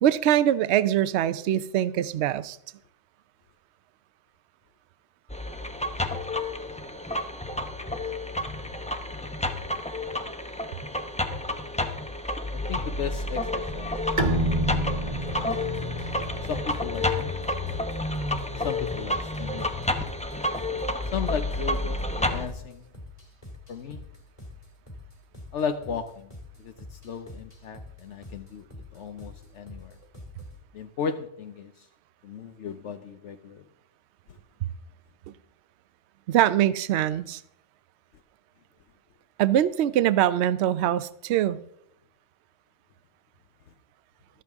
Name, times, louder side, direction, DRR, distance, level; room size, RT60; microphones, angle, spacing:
voice 1, 0.0-2.6 36.3-37.4 39.4-41.6, right 11 dB, 65° right, 15 dB, 0.8 m, -23 dB
sound 1, 5.3-22.5, left 1 dB, 5° left, 0.7 m, -30 dB
voice 2, 12.5-15.6 16.4-17.5 18.5-19.7 21.1-22.9 23.7-24.0 25.5-26.3 26.6-30.0 30.7-31.9 32.2-33.6 34.3-34.4, left 7 dB, 70° left, 8 dB, 1.0 m, -36 dB
Bowed string instrument, 14.2-17.6, right 1 dB, 40° right, 1.1 m, -31 dB
sound 2, 15.3-30.6, left 2 dB, 30° left, 2.1 m, -46 dB
14.0 x 12.5 x 3.5 m, 0.73 s
omnidirectional pair, 1.3 m